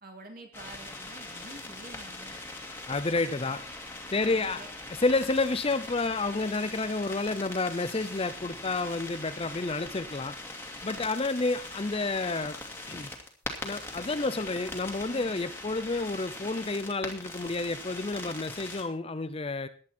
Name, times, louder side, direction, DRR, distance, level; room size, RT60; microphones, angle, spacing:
voice 1, 0.0-2.4 4.2-4.7, right 2 dB, 45° right, 3 dB, 3.0 m, -48 dB
sound 1, 0.5-18.8, left 2 dB, 10° left, 2.3 m, -41 dB
voice 2, 2.9-3.6 4.1-4.6 4.9-10.4 10.8-12.6 12.9-13.1 13.6-19.7, left 3 dB, 30° left, 12 dB, 0.6 m, -30 dB
15.0 x 11.0 x 4.4 m, 0.43 s
head